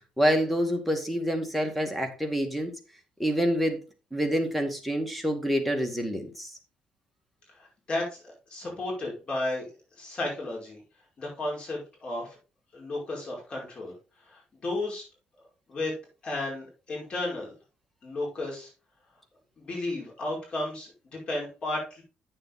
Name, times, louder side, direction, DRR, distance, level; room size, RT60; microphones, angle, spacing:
voice 1, 0.2-2.7 3.2-3.8 4.1-6.5, equal, ahead, 4 dB, 2.1 m, -27 dB
voice 2, 7.5-8.2 8.5-9.7 10.0-10.8 11.2-12.4 12.7-13.9 14.2-15.1 15.7-15.9 16.2-17.5 18.0-18.7 19.6-22.0, left 2 dB, 40° left, -1 dB, 5.0 m, -33 dB
8.8 x 7.1 x 3.9 m, 0.32 s
cardioid pair, 115°, 3 cm